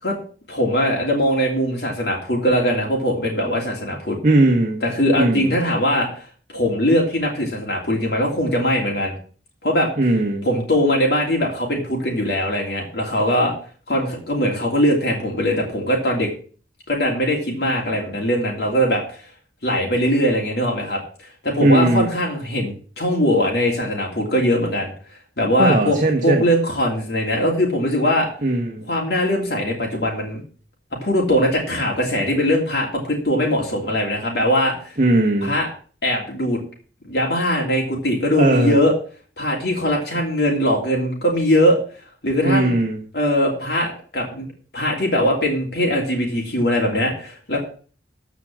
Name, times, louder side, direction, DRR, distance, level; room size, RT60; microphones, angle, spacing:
voice 1, 0.5-4.2 4.8-6.3 6.5-9.1 9.6-9.9 10.4-13.5 13.9-16.3 16.9-19.2 19.6-24.9 25.4-26.0 26.2-28.3 28.9-30.4 31.0-35.0 35.4-35.7 36.0-36.6 37.0-38.9 39.4-41.8 42.2-42.8 43.1-44.4 44.7-47.6, equal, 60° left, -2 dB, 3.0 m, -21 dB
voice 2, 4.2-4.8 5.2-5.5 10.0-10.5 21.6-22.1 25.6-26.4 28.4-28.9 35.0-35.5 38.4-38.8 42.4-43.0, right 2 dB, 45° right, 1 dB, 1.5 m, -18 dB
14.0 x 5.1 x 7.4 m, 0.41 s
head